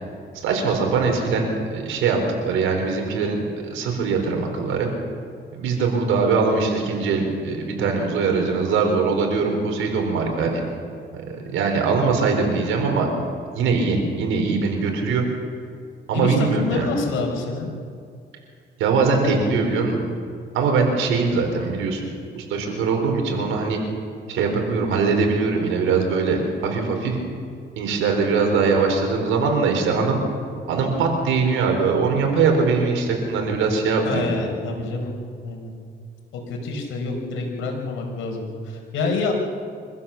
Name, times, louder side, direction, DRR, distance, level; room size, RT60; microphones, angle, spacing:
voice 1, 0.4-2.2 2.4-4.9 5.5-10.6 11.1-13.1 13.5-15.3 16.1-16.9 18.8-20.0 20.5-22.1 22.3-23.8 24.3-27.2 27.8-30.2 30.7-34.3, right 4 dB, 90° right, 3 dB, 4.5 m, -22 dB
voice 2, 16.1-17.7 34.0-35.1 35.4-35.7 36.3-39.3, left 3 dB, 90° left, 2 dB, 4.8 m, -27 dB
25.5 x 15.5 x 7.2 m, 2.3 s
cardioid pair, 90°, 20 cm